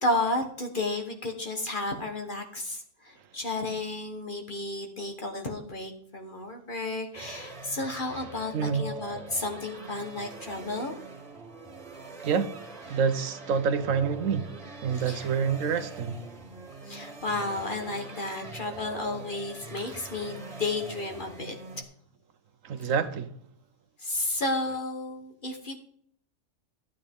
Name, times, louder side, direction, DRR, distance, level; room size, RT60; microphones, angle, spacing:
voice 1, 0.0-10.9 14.9-15.3 16.9-21.5 24.0-25.8, left 2 dB, 40° left, 1.4 m, -32 dB
sound 1, 7.1-21.8, right 3 dB, 50° right, 2.4 m, -43 dB
voice 2, 8.5-8.8 12.2-12.5 12.9-14.5 14.8-16.1 22.6-23.3, right 6 dB, 80° right, 1.2 m, -27 dB
12.5 x 8.5 x 3.6 m
omnidirectional pair, 1.3 m